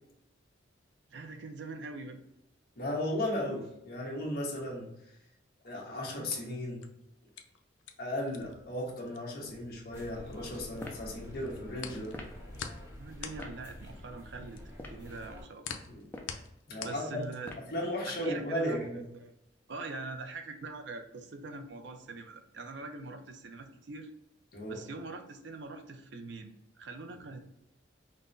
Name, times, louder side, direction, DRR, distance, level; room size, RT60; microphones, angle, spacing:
voice 1, 1.1-2.2 13.0-14.6 14.9-15.7 16.8-17.5 18.1-19.3 19.7-24.1 24.7-26.5 26.8-27.4, right 3 dB, 60° right, 6 dB, 0.5 m, -43 dB
voice 2, 2.8-4.9 5.6-6.8 8.0-12.1 15.9-16.1 16.7-17.2 17.7-19.0 24.5-24.8, left 1 dB, 50° left, -3 dB, 1.1 m, -35 dB
sound 1, 6.6-10.8 11.1-17.7, left 7 dB, 75° left, 0.4 m, -45 dB
sound 2, 9.9-15.4, left 1 dB, 15° right, 0.9 m, -48 dB
sound 3, 10.8-11.1 12.1-12.4 13.4-13.6 14.7-15.1 16.0-16.4 17.4-17.8, left 1 dB, 10° left, 0.4 m, -45 dB
5.3 x 2.1 x 2.5 m, 0.83 s
head